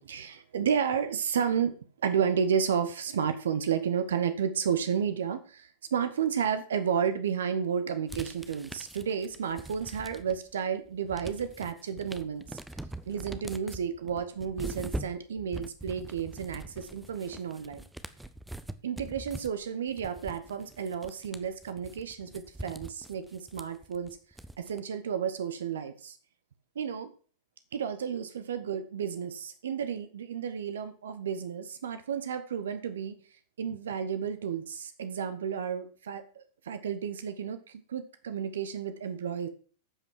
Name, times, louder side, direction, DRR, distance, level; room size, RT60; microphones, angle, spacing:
voice 1, 0.0-1.8 2.0-12.6 13.1-17.8 18.8-24.2 24.6-26.2 26.7-27.1 27.7-33.2 33.6-39.5, right 7 dB, 65° right, 11 dB, 0.9 m, -32 dB
sound 1, 8.1-10.5 10.9-24.8, right 1 dB, 5° right, 0.7 m, -43 dB
14.5 x 5.3 x 4.6 m, 0.42 s
figure-of-eight pair, 95°, 0 cm